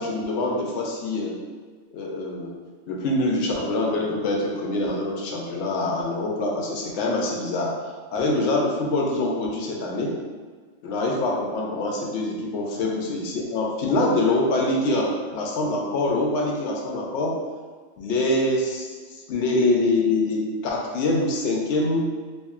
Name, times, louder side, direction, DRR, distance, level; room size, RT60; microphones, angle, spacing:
voice 1, 0.0-1.4 1.9-2.6 2.9-7.8 8.1-10.1 10.8-17.4 18.0-18.9 19.3-22.1, left 2 dB, 70° left, -1 dB, 0.8 m, -24 dB
2.8 x 2.5 x 2.4 m, 1.5 s
omnidirectional pair, 1.3 m